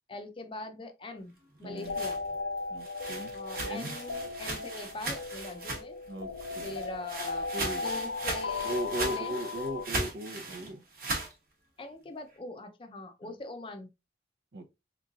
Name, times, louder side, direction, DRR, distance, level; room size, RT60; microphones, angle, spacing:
voice 1, 0.1-2.2 3.3-6.0 6.6-7.5 7.8-9.4 11.8-13.9, left 2 dB, 30° left, 0.4 m, -42 dB
sound 1, 1.6-6.1 6.4-11.3, right 2 dB, 55° right, 0.9 m, -38 dB
voice 2, 1.6-2.0 2.7-3.3 3.6-3.9 6.1-6.3 6.6-6.8 7.5-7.8 8.6-10.8 13.2-13.3 14.5-14.7, right 1 dB, 70° right, 0.6 m, -37 dB
sound 2, 1.7-9.9, left 4 dB, 85° left, 0.4 m, -37 dB
3.6 x 3.0 x 2.4 m
head